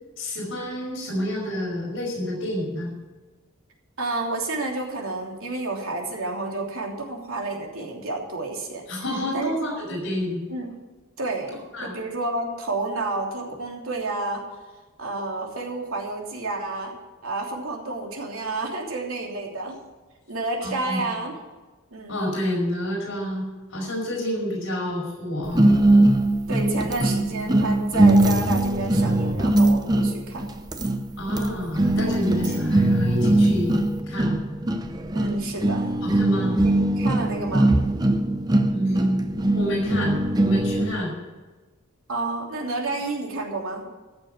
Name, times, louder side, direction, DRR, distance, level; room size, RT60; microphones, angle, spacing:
voice 1, 0.2-2.9 8.9-10.4 11.7-11.9 20.6-21.0 22.1-23.5 23.7-25.7 27.0-27.1 31.2-33.8 34.1-34.4 36.0-36.6 38.7-39.2 39.5-41.1, equal, 60° left, -1 dB, 5.2 m, -28 dB
voice 2, 4.0-8.8 9.3-9.5 9.9-10.0 10.5-10.7 11.2-14.5 15.0-17.0 17.2-19.8 20.3-21.3 21.9-22.2 26.5-30.5 32.4-32.6 35.1-35.9 36.6-37.7 42.1-43.9, right 2 dB, 75° right, 0 dB, 3.1 m, -30 dB
sound 1, 25.5-41.0, right 1 dB, 20° right, 0.7 m, -21 dB
14.0 x 7.2 x 8.2 m, 1.2 s
head